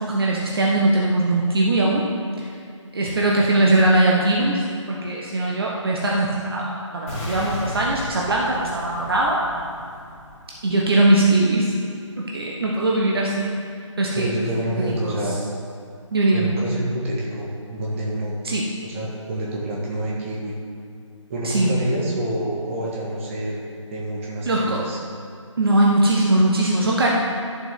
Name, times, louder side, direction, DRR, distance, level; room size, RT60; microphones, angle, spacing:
voice 1, 0.0-2.1 2.4-2.5 2.9-4.6 4.9-9.4 10.6-11.7 12.2-13.5 14.0-14.3 14.8-15.1 16.1-16.5 18.4-18.7 21.4-21.7 24.5-24.8 25.6-27.1, right 2 dB, 45° right, -3 dB, 1.2 m, -20 dB
sound 1, 7.1-11.1, left 1 dB, 25° left, 2.5 m, -35 dB
voice 2, 14.1-15.4 16.3-18.3 18.8-20.6 21.3-23.6 23.9-25.0, right 1 dB, 25° right, -4 dB, 1.7 m, -27 dB
12.0 x 7.2 x 3.7 m, 2.4 s
figure-of-eight pair, 155°, 17 cm